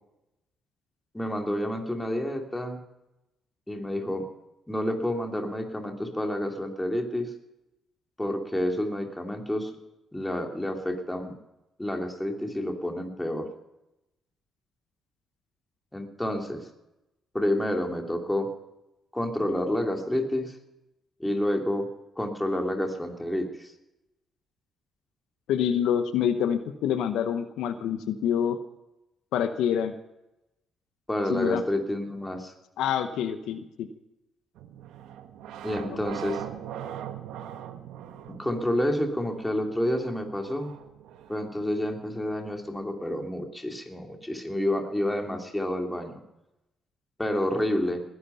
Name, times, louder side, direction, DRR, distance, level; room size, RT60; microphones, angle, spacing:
voice 1, 1.1-2.8 3.7-4.3 4.7-7.3 8.2-9.8 10.1-11.3 11.8-13.5 15.9-16.7 17.3-18.5 19.1-20.6 21.2-21.9 22.2-23.7 31.1-32.5 35.6-36.4 38.3-40.7 41.3-46.2 47.2-48.0, left 1 dB, 10° left, 3 dB, 2.7 m, -29 dB
voice 2, 25.5-28.6 29.3-29.9 31.3-31.6 32.8-33.9 35.9-36.0, left 9 dB, 85° left, 10 dB, 1.0 m, -26 dB
sound 1, 34.6-43.3, right 10 dB, 90° right, 1.2 m, -42 dB
19.5 x 11.0 x 5.6 m, 0.93 s
cardioid pair, 90°, 0 cm